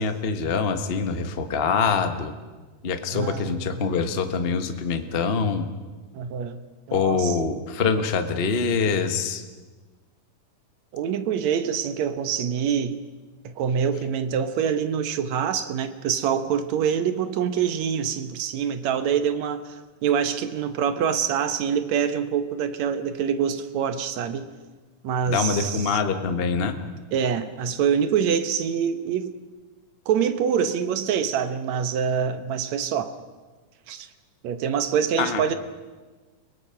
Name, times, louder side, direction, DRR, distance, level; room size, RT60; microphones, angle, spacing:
voice 1, 0.0-2.3 2.8-5.7 6.9-9.4 25.3-26.7 35.2-35.4, left 5 dB, 70° left, 7 dB, 0.5 m, -24 dB
voice 2, 3.1-3.9 6.1-6.6 6.9-7.4 10.9-13.0 13.4-24.5 25.0-26.0 27.1-29.3 30.1-33.1 33.9-34.1 34.4-35.6, right 7 dB, 70° right, 10 dB, 2.3 m, -25 dB
30.0 x 18.5 x 5.8 m, 1.3 s
omnidirectional pair, 3.4 m